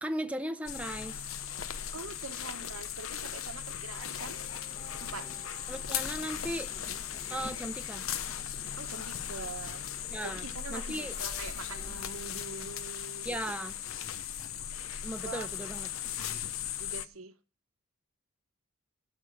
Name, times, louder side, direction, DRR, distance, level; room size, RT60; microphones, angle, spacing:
voice 1, 0.0-1.2 5.7-6.7 7.3-8.1 10.1-10.4 10.7-11.1 13.2-13.8 15.0-15.9, right 1 dB, 5° right, 0.7 m, -37 dB
sound 1, 0.7-17.1, left 9 dB, 75° left, 0.8 m, -38 dB
voice 2, 1.9-4.4 5.0-5.3 8.7-9.8 10.2-13.5 15.2-15.5 16.8-17.3, right 4 dB, 85° right, 1.1 m, -44 dB
sound 2, 4.2-12.1, left 1 dB, 30° left, 1.4 m, -52 dB
12.5 x 6.4 x 7.8 m
head